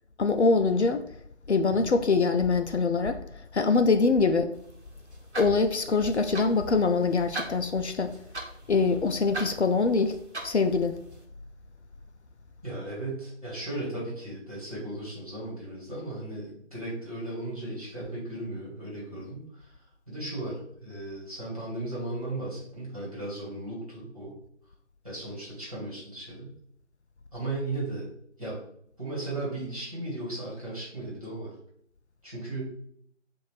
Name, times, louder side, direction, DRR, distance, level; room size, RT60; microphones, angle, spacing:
voice 1, 0.2-1.1 1.5-3.2 3.5-4.5 5.4-8.1 8.7-10.2 10.4-11.0, left 4 dB, 65° left, 0.5 m, -24 dB
sound 1, 4.5-11.2, right 2 dB, 65° right, 1.0 m, -42 dB
voice 2, 12.6-19.8 20.1-24.3 25.0-26.5 27.3-28.1 28.4-28.6 29.0-31.5 32.2-32.6, right 2 dB, 30° right, 1.6 m, -36 dB
5.5 x 2.6 x 3.1 m
figure-of-eight pair, 175°, 37 cm